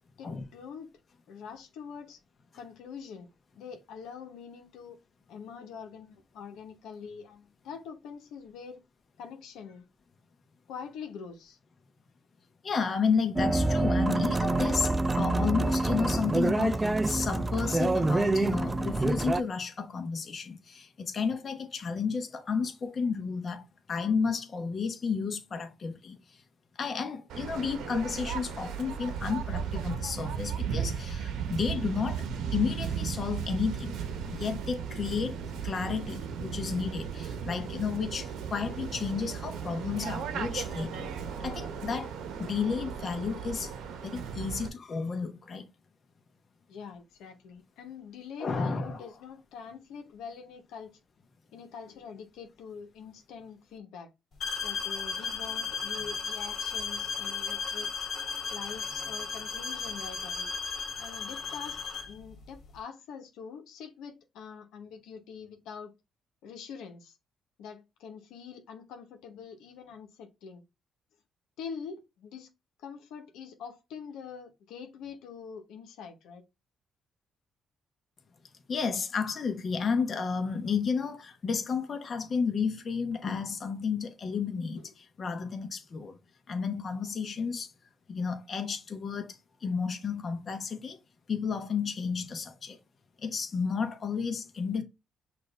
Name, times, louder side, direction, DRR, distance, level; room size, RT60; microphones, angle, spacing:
voice 1, 0.2-0.9 1.3-2.2 2.5-3.3 3.6-5.0 5.3-8.8 9.2-9.8 10.7-11.6 46.7-50.9 51.5-54.1 54.6-58.1 58.5-60.5 61.0-65.9 66.4-67.2 67.6-70.6 71.6-72.5 72.8-76.4 84.8-84.9, left 6 dB, 90° left, 1.0 m, -44 dB
voice 2, 12.6-26.2 26.8-32.2 32.5-34.0 34.3-35.4 35.6-41.1 41.4-43.7 44.0-45.6 48.4-49.0 78.7-86.2 86.5-87.7 88.1-91.0 91.3-92.8 93.2-94.8, left 5 dB, 45° left, 1.0 m, -32 dB
sound 1, 13.4-19.4, right 2 dB, 20° right, 0.4 m, -26 dB
Waves surf, 27.3-44.7, right 7 dB, 85° right, 1.0 m, -36 dB
sound 2, 54.4-62.2, left 5 dB, 60° left, 2.0 m, -35 dB
6.0 x 2.6 x 3.4 m
cardioid pair, 90°, 0 cm